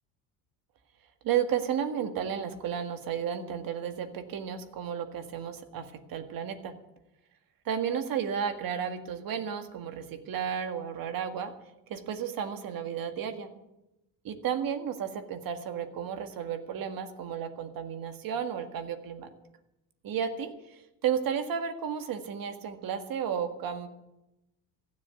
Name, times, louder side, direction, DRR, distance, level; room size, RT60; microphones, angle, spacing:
voice 1, 1.2-6.7 7.7-11.5 11.9-13.5 14.2-19.3 20.0-23.9, right 8 dB, 55° right, 8 dB, 1.8 m, -33 dB
15.5 x 7.3 x 9.5 m, 0.92 s
cardioid pair, 110°, 42 cm